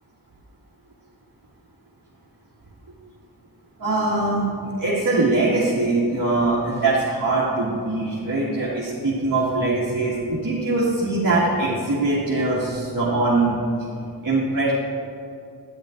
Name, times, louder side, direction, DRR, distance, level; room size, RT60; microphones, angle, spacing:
voice 1, 3.8-4.5 4.8-13.6 14.2-14.7, right 2 dB, 50° right, -9 dB, 2.1 m, -22 dB
12.0 x 10.0 x 3.9 m, 2.6 s
wide cardioid pair, 140°, 42 cm